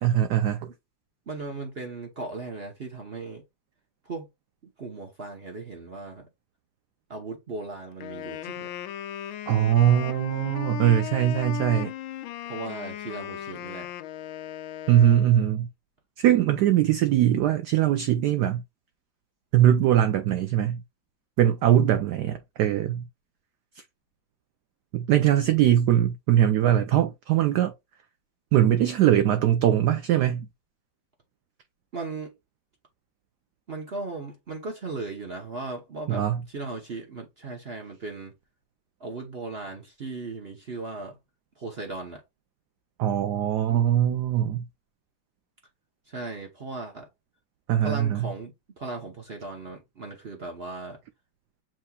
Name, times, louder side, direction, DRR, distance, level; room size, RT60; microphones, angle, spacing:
voice 1, 0.0-0.7 9.5-11.9 14.9-15.7 16.2-18.6 19.5-20.8 21.4-23.0 24.9-27.7 28.5-30.5 36.1-36.4 43.0-44.6 47.7-48.3, right 11 dB, 75° right, 0.9 m, -21 dB
voice 2, 1.3-3.4 4.0-4.3 4.8-6.3 7.1-8.7 12.4-13.9 31.9-32.3 33.7-38.3 39.0-41.2 41.6-42.2 46.1-47.1 47.8-51.0, right 3 dB, 45° right, 0.8 m, -37 dB
Wind instrument woodwind instrument, 8.0-15.6, left 12 dB, 85° left, 1.4 m, -37 dB
7.5 x 3.0 x 2.2 m
omnidirectional pair, 2.2 m